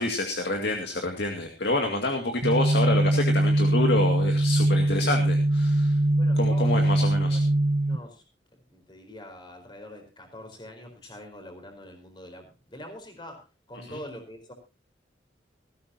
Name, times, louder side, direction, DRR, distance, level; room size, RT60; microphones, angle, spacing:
voice 1, 0.0-6.0 6.4-7.4 13.9-14.0, left 2 dB, 65° left, 3 dB, 2.2 m, -28 dB
sound 1, 2.4-8.0, right 1 dB, 60° right, 1.1 m, -22 dB
voice 2, 6.2-6.9 7.3-7.5 7.9-8.2 8.7-13.4 13.7-14.5, left 1 dB, 25° left, 5 dB, 4.4 m, -44 dB
18.5 x 15.0 x 2.8 m, 0.30 s
head